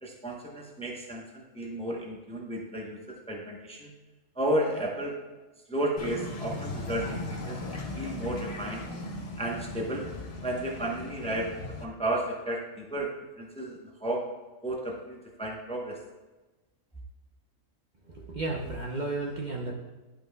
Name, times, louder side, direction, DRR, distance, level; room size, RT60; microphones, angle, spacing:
voice 1, 0.0-3.0 3.3-3.9 4.4-5.2 5.7-8.8 9.4-10.1 10.4-11.5 11.8-13.1 13.4-14.3 14.6-16.0, right 1 dB, 5° left, -1 dB, 0.7 m, -33 dB
sound 1, 6.0-11.8, left 2 dB, 55° left, 1.1 m, -38 dB
voice 2, 18.1-19.7, right 2 dB, 45° right, -2 dB, 0.7 m, -33 dB
11.5 x 5.4 x 2.3 m, 1.2 s
omnidirectional pair, 1.3 m